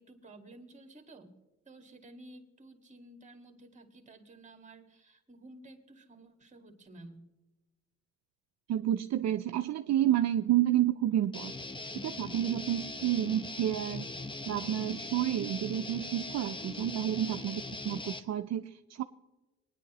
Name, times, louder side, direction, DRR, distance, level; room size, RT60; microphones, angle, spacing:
voice 1, 0.0-1.4 1.6-7.3, right 2 dB, 25° right, 5 dB, 2.0 m, -53 dB
voice 2, 8.7-11.5 11.9-14.1 14.4-19.0, right 12 dB, 60° right, 7 dB, 0.5 m, -30 dB
Guitar, 11.3-18.2, left 2 dB, 15° left, 0.8 m, -41 dB
19.5 x 10.0 x 3.0 m, 1.1 s
cardioid pair, 90°, 30 cm